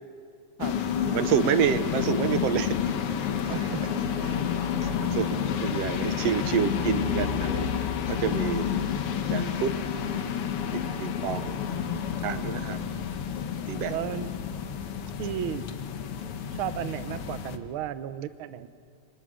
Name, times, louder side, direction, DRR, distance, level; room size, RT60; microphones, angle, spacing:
sound 1, 0.6-17.6, left 8 dB, 60° left, 1.8 m, -30 dB
voice 1, 1.1-2.8 3.4-3.6 4.2-4.4 4.8-7.8 8.1-8.7 9.3-9.8 10.7-11.6 12.2-12.8 13.7-14.0, right 9 dB, 70° right, 11 dB, 1.8 m, -28 dB
voice 2, 3.5-3.8 13.9-14.3 15.2-15.6 16.5-18.7, right 11 dB, 90° right, 12 dB, 1.1 m, -33 dB
29.0 x 25.5 x 6.4 m, 2.2 s
omnidirectional pair, 3.4 m